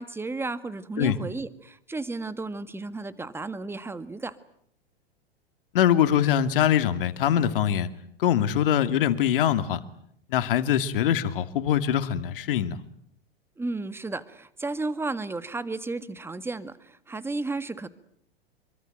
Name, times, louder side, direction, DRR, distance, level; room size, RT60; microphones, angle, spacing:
voice 1, 0.0-4.4 13.6-17.9, right 3 dB, 5° right, 14 dB, 1.6 m, -33 dB
voice 2, 5.7-7.9 8.2-9.8 10.3-12.8, left 10 dB, 60° left, 11 dB, 2.4 m, -23 dB
26.5 x 23.5 x 9.2 m, 0.70 s
figure-of-eight pair, 95°, 31 cm